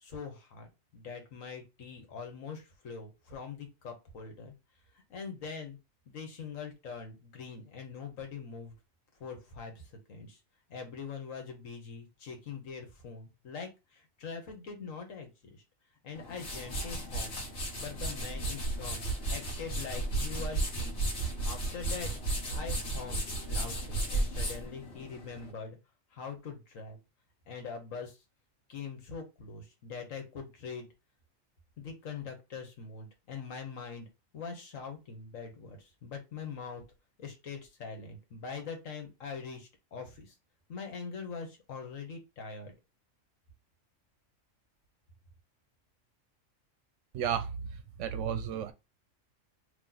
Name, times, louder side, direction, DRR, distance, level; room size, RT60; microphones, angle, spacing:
voice 1, 0.0-4.5 5.1-5.8 6.1-8.7 9.2-10.4 10.7-15.6 16.0-17.3 17.7-19.0 19.3-20.9 21.4-22.1 22.5-23.2 23.5-25.8 26.1-27.0 27.5-28.2 28.7-30.9 31.8-34.1 34.3-36.8 37.2-40.3 40.7-42.7, left 5 dB, 80° left, 1.5 m, -43 dB
sound 1, 16.1-25.5, right 2 dB, 60° left, 1.5 m, -34 dB
voice 2, 47.1-47.5 48.0-48.7, right 8 dB, 70° right, 0.9 m, -32 dB
3.0 x 2.9 x 3.9 m
omnidirectional pair, 1.4 m